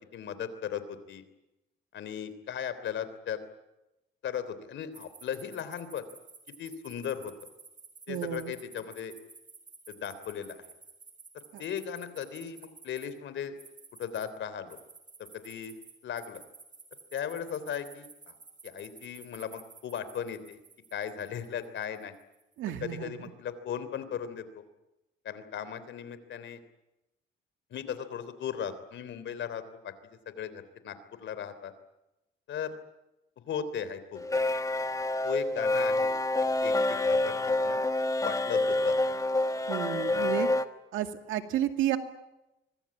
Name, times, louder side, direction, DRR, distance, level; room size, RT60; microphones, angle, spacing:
voice 1, 0.1-1.2 1.9-3.4 4.2-6.0 6.6-7.3 8.1-9.1 9.9-10.6 11.6-12.6 12.8-13.6 14.0-14.8 15.3-15.7 16.0-16.4 17.1-18.4 18.6-20.6 20.9-22.1 22.8-24.6 25.2-26.6 27.7-29.9 30.2-31.7 32.5-32.7 33.4-34.4 35.2-36.1 36.6-37.8 38.2-39.2, left 8 dB, 70° left, 13 dB, 3.3 m, -37 dB
sound 1, 4.9-13.1 13.6-14.3 14.7-22.5, right 4 dB, 40° right, 7.3 m, -52 dB
voice 2, 8.1-8.5 11.5-11.6 22.6-23.1 39.7-40.5 40.9-42.0, right 12 dB, 90° right, 7 dB, 2.3 m, -31 dB
sound 2, 34.2-40.7, left 2 dB, 15° left, 1.5 m, -27 dB
25.0 x 21.5 x 8.8 m, 0.93 s
cardioid pair, 90°, 20 cm